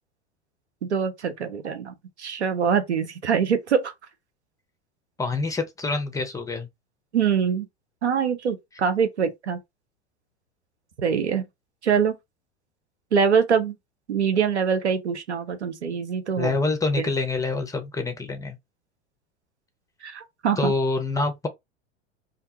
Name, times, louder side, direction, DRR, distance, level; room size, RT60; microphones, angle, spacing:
voice 1, 0.8-3.9 7.1-7.7 8.0-9.6 11.0-11.4 11.8-12.2 13.1-13.7 14.1-16.5 20.0-20.7, right 7 dB, 85° right, 0.7 m, -24 dB
voice 2, 5.2-6.7 16.4-18.6 20.6-21.5, left 3 dB, 10° left, 0.6 m, -26 dB
2.5 x 2.2 x 2.7 m
figure-of-eight pair, 90°, 33 cm